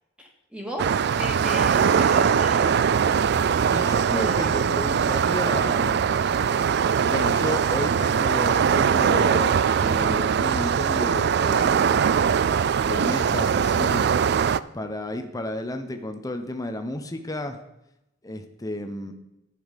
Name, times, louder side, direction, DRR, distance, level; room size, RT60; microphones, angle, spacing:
voice 1, 0.2-2.8 3.8-4.7, equal, 5° right, 0 dB, 2.2 m, -35 dB
sound 1, 0.8-14.6, right 7 dB, 55° right, 0.3 m, -21 dB
voice 2, 3.7-6.2 7.1-12.2 12.8-14.2 14.7-17.6 18.2-19.1, left 1 dB, 20° left, 6 dB, 0.8 m, -32 dB
11.5 x 8.6 x 5.2 m, 0.89 s
head